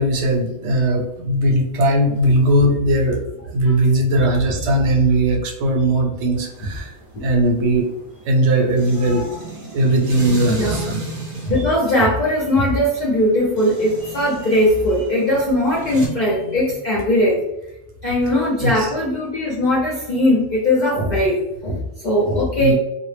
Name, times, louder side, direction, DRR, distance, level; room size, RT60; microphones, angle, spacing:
voice 1, 0.0-6.9 7.2-7.9 8.2-9.3 9.7-11.0 18.6-18.9 22.6-22.7, right 1 dB, 85° right, 1 dB, 0.9 m, -18 dB
sound 1, 6.3-16.1, right 2 dB, 40° right, 0.5 m, -34 dB
voice 2, 10.5-10.8 11.4-17.4 18.0-22.7, left 1 dB, 55° left, -5 dB, 0.6 m, -19 dB
2.0 x 2.0 x 3.1 m, 0.90 s
omnidirectional pair, 1.1 m